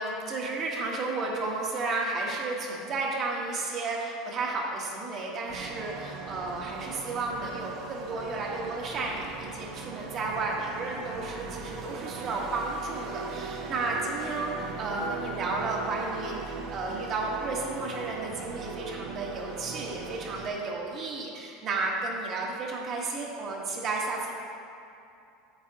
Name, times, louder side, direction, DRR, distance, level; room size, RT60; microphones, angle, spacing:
voice 1, 0.0-24.3, right 3 dB, 40° right, -2 dB, 1.4 m, -32 dB
sound 1, 5.5-20.5, right 5 dB, 55° right, 0.9 m, -39 dB
9.9 x 7.4 x 2.9 m, 2.6 s
supercardioid pair, 140°, 0 cm